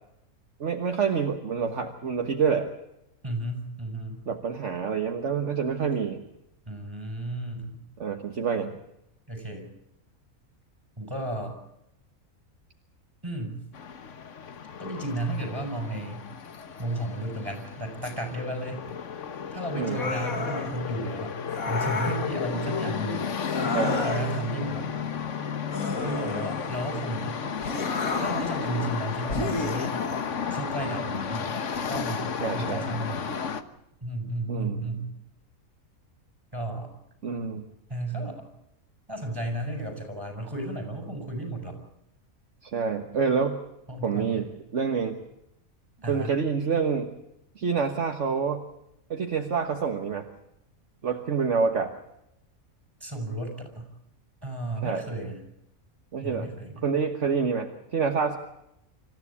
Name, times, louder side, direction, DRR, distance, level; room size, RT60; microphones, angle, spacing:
voice 1, 0.6-2.7 4.3-6.2 8.0-8.8 19.8-20.0 23.7-24.1 32.4-32.8 34.5-34.8 37.2-37.7 42.6-43.6 44.0-44.4 44.7-45.2 46.1-47.1 47.6-48.6 49.1-50.3 51.0-51.9 54.8-55.0 56.1-56.5 56.8-58.4, right 5 dB, 55° right, 4 dB, 1.7 m, -27 dB
voice 2, 3.2-4.2 6.7-7.8 9.3-9.7 11.0-11.6 13.2-13.6 14.8-16.3 16.8-18.8 19.5-21.3 21.7-23.3 23.6-24.9 25.9-27.4 28.2-29.9 30.5-31.5 31.9-32.2 32.5-33.5 34.0-35.1 36.5-36.9 37.9-38.4 39.1-41.8 43.9-44.5 46.0-46.4 53.0-53.9 54.4-55.4 56.2-56.8, right 1 dB, 15° right, 3 dB, 6.1 m, -33 dB
sound 1, 13.7-33.6, left 7 dB, 60° left, 1.5 m, -33 dB
sound 2, 19.8-20.8 21.5-22.3 23.4-24.4 25.7-26.8 27.6-28.6 29.3-30.3, left 3 dB, 75° left, 2.5 m, -32 dB
26.5 x 14.5 x 8.5 m, 0.83 s
omnidirectional pair, 1.5 m